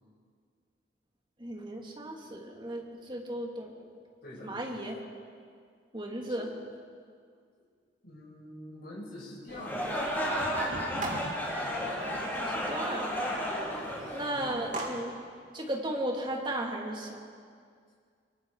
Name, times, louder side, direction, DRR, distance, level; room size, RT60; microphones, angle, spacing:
voice 1, 1.4-3.8 4.4-5.0 5.9-6.5 12.4-13.2 14.1-15.1 15.5-17.3, right 1 dB, 25° right, 0 dB, 2.9 m, -35 dB
voice 2, 4.2-4.6 6.3-6.5 7.5-7.6 8.0-9.9 13.7-14.4, left 1 dB, 55° left, -5 dB, 6.1 m, -46 dB
Thunder, 9.3-14.5 15.2-15.7 16.0-16.1, right 1 dB, 85° right, 2.5 m, -46 dB
sound 1, 9.5-14.9, right 2 dB, 45° right, 3.6 m, -42 dB
sound 2, 9.6-14.8, equal, 10° left, 4.3 m, -33 dB
25.5 x 24.0 x 4.9 m, 2.1 s
head